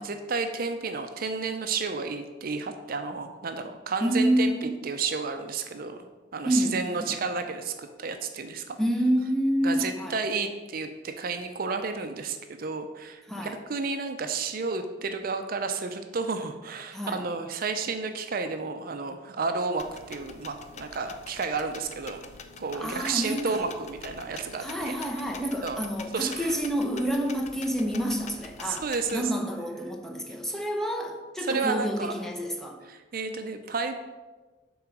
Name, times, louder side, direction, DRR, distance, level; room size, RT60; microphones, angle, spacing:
voice 1, 0.0-6.0 6.3-8.8 9.6-22.2 22.6-24.9 25.6-25.8 26.1-26.5 28.6-29.3 31.4-32.1 32.9-34.0, right 4 dB, 50° right, 7 dB, 0.5 m, -31 dB
voice 2, 4.0-4.7 6.4-7.2 8.8-10.2 13.3-13.6 16.9-17.2 22.7-23.6 24.6-28.8 29.1-32.8, equal, ahead, 2 dB, 0.7 m, -28 dB
sound 1, 19.8-29.3, left 5 dB, 40° left, 0.5 m, -46 dB
7.3 x 3.9 x 5.9 m, 1.3 s
head